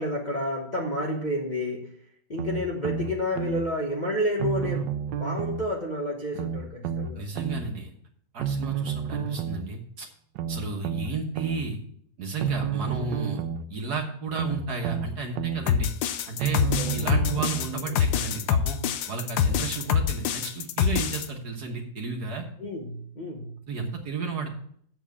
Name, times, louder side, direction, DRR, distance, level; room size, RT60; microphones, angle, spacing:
voice 1, 0.0-1.9 2.3-4.9 5.2-7.3 12.9-13.2 16.5-17.3 17.7-18.1 22.6-23.5, left 1 dB, 30° left, -1 dB, 1.1 m, -30 dB
sound 1, 2.4-3.6 4.4-5.7 6.4-7.6 8.4-9.6 10.4-11.6 12.4-13.6 14.4-15.6 16.4-17.7 18.4-18.5, right 7 dB, 80° right, 1.3 m, -30 dB
voice 2, 7.2-7.9 8.3-10.1 10.5-11.8 12.2-13.4 13.7-15.9 16.3-16.6 16.9-18.8 19.1-22.5 23.7-24.5, right 4 dB, 60° right, 1 dB, 1.8 m, -33 dB
sound 2, 15.7-21.3, left 8 dB, 90° left, 1.4 m, -25 dB
7.6 x 7.3 x 6.9 m, 0.63 s
omnidirectional pair, 2.0 m